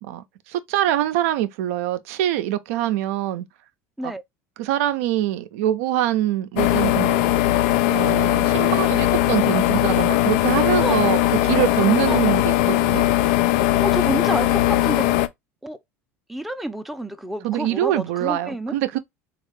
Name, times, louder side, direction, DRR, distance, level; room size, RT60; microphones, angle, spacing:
voice 1, 0.0-3.5 4.0-4.1 4.6-7.2 7.9-13.0 17.4-19.0, right 13 dB, 75° right, 0.4 m, -24 dB
sound 1, 6.6-15.3, left 14 dB, 70° left, 0.4 m, -19 dB
voice 2, 13.8-15.1 15.6-15.8 16.3-18.8, right 1 dB, ahead, 0.5 m, -29 dB
3.2 x 2.4 x 3.2 m
hypercardioid pair, 85°, 8 cm